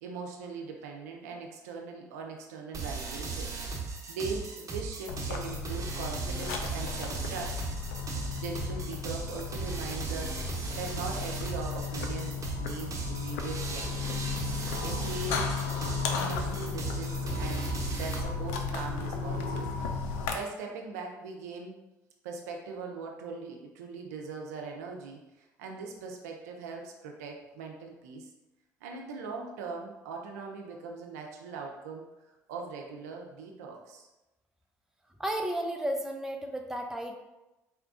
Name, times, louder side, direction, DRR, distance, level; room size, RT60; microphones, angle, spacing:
voice 1, 0.0-7.6 8.3-14.2 14.8-15.6 16.1-19.7 20.3-21.8 22.2-28.3 28.8-32.1 32.5-34.1, right 4 dB, 85° right, 1 dB, 0.5 m, -40 dB
sound 1, 2.7-18.2, right 4 dB, 40° right, 1.0 m, -37 dB
sound 2, 5.1-20.4, left 5 dB, 80° left, 0.4 m, -35 dB
voice 2, 35.2-37.2, right 1 dB, 5° right, 3 dB, 0.6 m, -33 dB
4.2 x 2.3 x 3.7 m, 1.0 s
hypercardioid pair, 60°, 8 cm